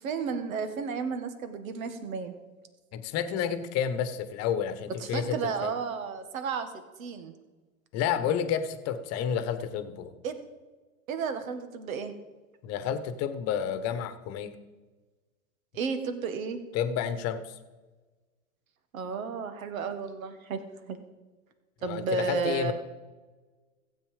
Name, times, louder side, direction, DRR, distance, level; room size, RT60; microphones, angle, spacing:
voice 1, 0.0-2.3 5.0-6.7 7.0-7.3 10.2-10.4 11.1-12.1 15.7-16.6 18.9-20.6 20.9-21.0 21.8-22.7, right 5 dB, 75° right, 9 dB, 1.8 m, -32 dB
voice 2, 2.9-5.7 7.9-10.1 12.6-14.6 16.7-17.6 21.8-22.7, left 8 dB, 35° left, 11 dB, 1.2 m, -30 dB
15.5 x 8.3 x 5.0 m, 1.3 s
hypercardioid pair, 120°, 42 cm